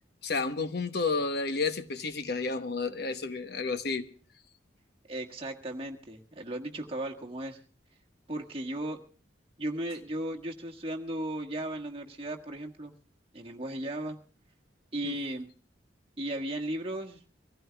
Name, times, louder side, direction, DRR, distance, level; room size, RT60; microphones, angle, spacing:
voice 1, 0.2-4.1 15.0-15.2, left 4 dB, 60° left, 1.1 m, -31 dB
voice 2, 5.1-7.6 8.3-9.0 9.6-12.9 13.3-14.2 14.9-15.5 16.2-17.2, right 1 dB, 30° right, 1.6 m, -36 dB
24.5 x 15.5 x 2.3 m
head